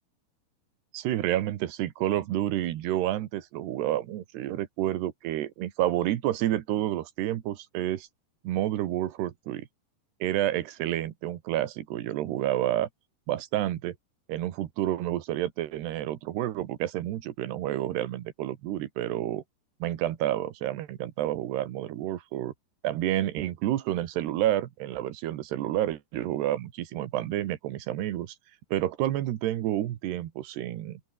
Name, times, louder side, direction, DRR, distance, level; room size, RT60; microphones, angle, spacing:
voice 1, 0.9-8.1 8.4-9.7 10.2-12.9 13.3-14.0 14.3-19.4 19.8-22.5 22.8-28.4 28.7-31.0, right 13 dB, 75° right, 3.5 m, -29 dB
open air
omnidirectional pair, 4.9 m